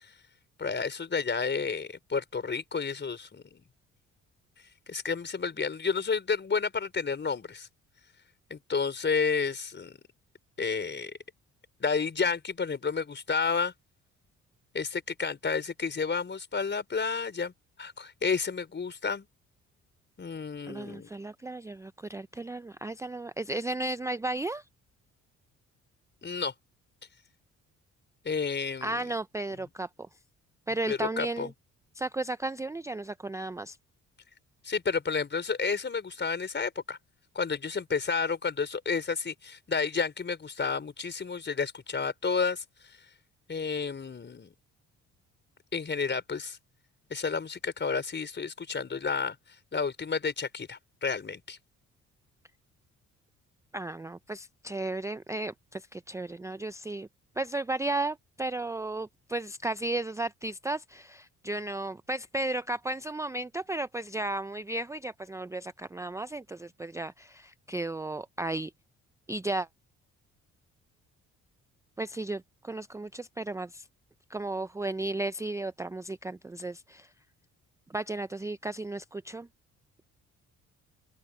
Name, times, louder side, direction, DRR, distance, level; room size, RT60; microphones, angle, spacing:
voice 1, 0.6-3.6 4.9-7.7 8.5-10.0 10.6-11.1 11.8-13.7 14.7-17.5 17.8-19.3 20.2-21.1 26.2-26.5 28.2-29.0 30.9-31.5 34.6-37.0 37.3-42.6 43.5-44.5 45.7-46.6 47.1-49.4 49.7-51.6, left 5 dB, 35° left, 4.6 m, -31 dB
voice 2, 20.7-24.6 28.8-29.9 30.7-31.5 31.9-33.8 53.7-57.1 57.4-68.7 69.3-69.7 72.0-73.8 74.3-77.1 77.9-79.5, right 2 dB, 10° right, 0.5 m, -34 dB
open air
cardioid pair, 75°, 31 cm